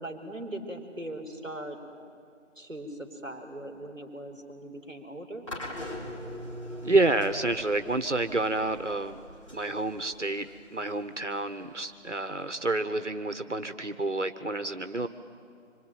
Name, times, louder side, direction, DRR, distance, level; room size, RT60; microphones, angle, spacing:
voice 1, 0.0-1.8 2.5-5.4, right 1 dB, 5° right, -18 dB, 2.9 m, -40 dB
sound 1, 5.5-12.5, equal, 25° left, 4.7 m, -42 dB
voice 2, 6.8-9.2 9.5-15.1, right 2 dB, 65° right, 10 dB, 1.3 m, -29 dB
26.0 x 24.5 x 9.2 m, 2.3 s
figure-of-eight pair, 170°, 38 cm